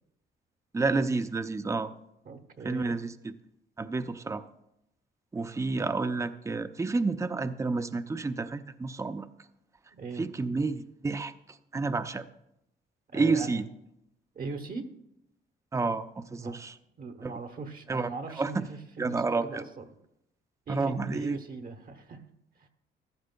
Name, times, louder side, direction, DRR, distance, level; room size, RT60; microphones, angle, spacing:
voice 1, 0.7-1.9 2.6-3.3 3.8-4.4 5.3-9.3 10.2-11.3 11.7-12.2 13.1-13.6 15.7-16.7 17.2-17.3 17.9-18.1 18.4-18.6 19.0-19.6 20.7-21.4, right 3 dB, 15° right, 11 dB, 0.5 m, -30 dB
voice 2, 2.2-3.0 9.9-10.2 13.1-13.6 14.3-14.9 16.4-16.6 17.0-20.0 20.7-22.3 22.6-22.7, right 4 dB, 45° right, 5 dB, 1.0 m, -40 dB
14.5 x 11.5 x 2.2 m, 0.83 s
cardioid pair, 90°, 20 cm